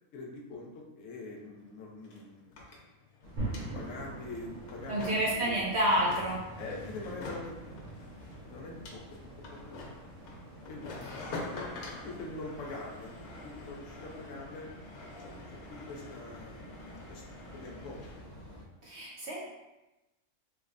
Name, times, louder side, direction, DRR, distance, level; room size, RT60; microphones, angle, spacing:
voice 1, 0.1-2.5 3.7-5.6 6.6-7.8 8.5-9.0 9.5-9.9 10.7-13.1 13.4-14.7 15.2-17.2 17.5-18.2, left 2 dB, 65° left, -1 dB, 1.0 m, -44 dB
sound 1, 1.4-1.5 1.6-18.3, left 2 dB, 85° left, 1.2 m, -47 dB
sound 2, 3.2-18.6, equal, 45° left, 0.6 m, -50 dB
sound 3, 3.4-13.5, right 2 dB, 75° right, 1.5 m, -45 dB
voice 2, 4.9-6.4 11.1-11.2 18.8-19.4, right 1 dB, 60° right, -4 dB, 0.8 m, -29 dB
3.3 x 3.2 x 2.5 m, 1.0 s
omnidirectional pair, 1.5 m